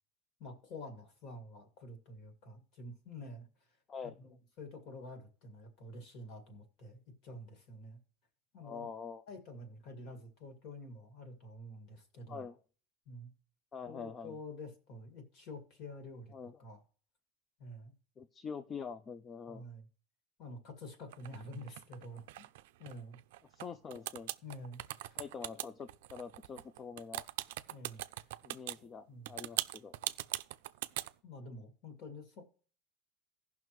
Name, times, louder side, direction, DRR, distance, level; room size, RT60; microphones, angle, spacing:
voice 1, 0.4-3.5 4.2-8.0 8.5-8.9 9.3-12.5 13.1-13.3 13.9-16.3 16.6-16.8 17.6-17.9 19.5-19.9 20.4-22.5 22.8-23.2 24.4-25.2 27.7-28.3 28.8-29.4 31.2-32.5, left 1 dB, 50° left, 2.1 m, -48 dB
voice 2, 8.6-9.2 12.3-12.6 13.7-14.4 16.3-16.5 18.2-19.6 23.5-24.3 25.2-27.2 28.4-30.0, left 6 dB, 20° left, 0.4 m, -45 dB
sound 1, 21.1-23.7 23.9-28.8 29.3-31.1, right 16 dB, 90° right, 0.4 m, -40 dB
16.5 x 5.8 x 3.1 m
supercardioid pair, 160°, 0 cm